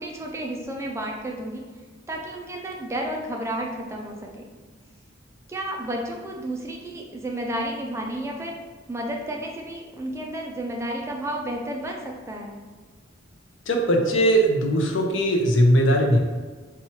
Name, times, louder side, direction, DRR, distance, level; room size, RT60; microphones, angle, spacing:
voice 1, 0.0-1.6 2.1-4.4 5.5-8.5 8.9-12.6, right 1 dB, 15° right, 0 dB, 0.3 m, -32 dB
voice 2, 13.7-16.2, right 1 dB, 70° left, 2 dB, 0.5 m, -19 dB
4.2 x 2.3 x 2.8 m, 1.4 s
head